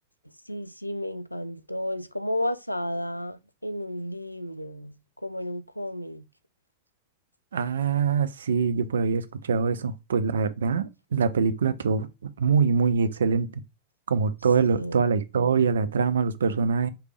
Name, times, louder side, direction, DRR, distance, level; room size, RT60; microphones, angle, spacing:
voice 1, 0.5-5.0 5.2-6.3 14.7-15.1, left 1 dB, 90° left, 0.3 m, -32 dB
voice 2, 7.5-13.5 14.1-16.9, right 5 dB, 65° right, 0.5 m, -24 dB
5.1 x 3.3 x 3.2 m
figure-of-eight pair, 90°, 0 cm